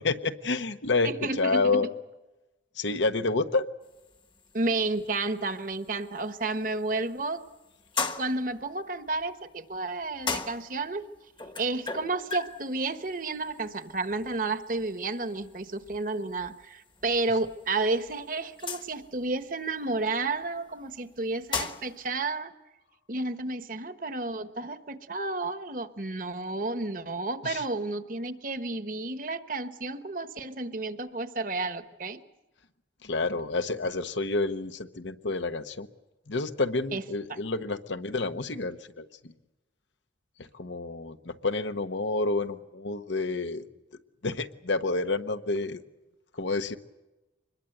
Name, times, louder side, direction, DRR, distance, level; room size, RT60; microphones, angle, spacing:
voice 1, 0.0-1.9 2.8-3.7 27.4-27.6 33.0-35.9 36.3-39.3 40.5-43.6 44.2-45.8 46.4-46.8, left 3 dB, 85° left, 9 dB, 1.2 m, -29 dB
voice 2, 1.0-1.8 4.5-7.4 8.2-11.0 11.6-22.5 23.1-32.2 36.9-37.0, right 3 dB, 45° right, 11 dB, 1.2 m, -31 dB
sound 1, 3.8-22.0, left 4 dB, 25° left, 1.1 m, -40 dB
25.0 x 21.5 x 7.9 m, 1.1 s
head